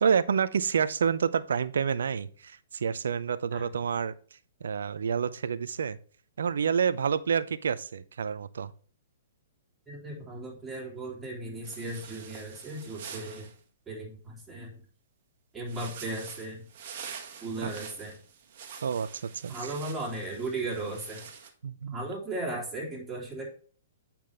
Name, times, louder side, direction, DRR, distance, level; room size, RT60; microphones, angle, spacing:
voice 1, 0.0-4.1 4.6-6.0 6.4-8.7 17.6-17.7 18.8-19.7 21.6-22.0, right 7 dB, 70° right, 15 dB, 0.6 m, -28 dB
voice 2, 9.9-13.5 13.9-14.7 15.5-16.6 17.4-18.2 19.5-21.2 21.9-23.5, right 2 dB, 10° right, -5 dB, 3.2 m, -36 dB
Clothing Rustle Acrylic, 11.6-13.6 15.7-21.5, right 7 dB, 50° right, 1.5 m, -46 dB
8.5 x 5.9 x 3.4 m, 0.43 s
hypercardioid pair, 120°, 0 cm